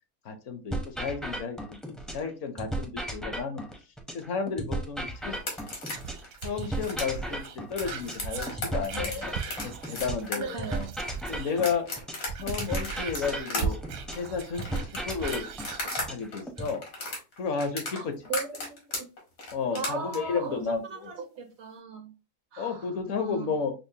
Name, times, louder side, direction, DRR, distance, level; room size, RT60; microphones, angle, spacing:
voice 1, 0.2-3.6 4.1-5.4 6.4-9.3 9.6-10.6 11.3-11.9 12.4-13.8 14.2-15.5 16.1-16.9 17.4-18.1 19.5-21.1 22.6-23.7, left 5 dB, 65° left, 1.0 m, -32 dB
sound 1, 0.7-2.3 2.6-6.3 6.6-10.3 10.6-14.3 14.6-16.7, right 1 dB, ahead, 0.4 m, -35 dB
sound 2, 5.3-16.1 16.3-20.2, left 2 dB, 80° left, 1.9 m, -35 dB
Whispering, 5.8-11.8 12.2-16.1 16.6-16.7, right 6 dB, 85° right, 1.0 m, -39 dB
voice 2, 10.3-10.9 17.9-19.1 19.7-22.1 22.5-22.9 23.2-23.7, right 4 dB, 65° right, 0.8 m, -38 dB
5.6 x 2.0 x 2.7 m
omnidirectional pair, 1.4 m